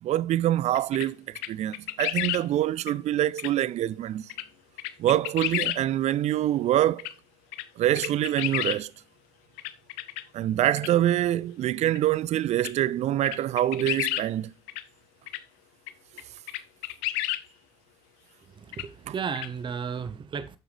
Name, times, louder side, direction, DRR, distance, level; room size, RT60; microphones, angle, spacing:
voice 1, 0.0-4.3 5.0-7.1 7.8-8.9 10.3-14.5 19.1-19.2, right 13 dB, 55° right, 0.4 m, -25 dB
sound 1, 0.7-1.1 1.4-2.4 2.9-3.0 3.4-3.5 4.3-4.4 4.8-5.8 7.0-7.1 7.5-7.6 8.0-8.8 9.6-10.2 10.8-10.9 11.9-12.0 12.6-12.7 13.2-14.3 14.7-14.8 15.3-15.4 15.9-16.0 16.2-16.3 16.5-17.4 18.7-18.8 19.3-19.5, left 16 dB, 85° left, 0.5 m, -31 dB
voice 2, 18.5-20.6, right 6 dB, 35° right, 0.8 m, -34 dB
8.9 x 6.9 x 3.2 m
supercardioid pair, 70°, 14 cm